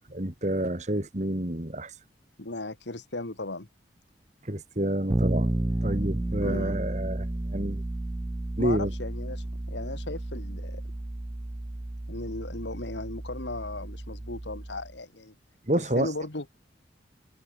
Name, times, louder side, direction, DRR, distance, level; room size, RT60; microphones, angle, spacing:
voice 1, 0.1-1.9 4.5-5.5 5.8-7.3 7.5-7.8 8.6-8.9 15.7-16.1, right 1 dB, 40° right, 2.6 m, -28 dB
voice 2, 2.4-3.7 6.4-6.8 8.6-10.8 12.1-15.3 15.8-16.5, left 2 dB, 80° left, 2.2 m, -36 dB
Bass guitar, 5.1-14.9, right 1 dB, 15° right, 0.4 m, -32 dB
head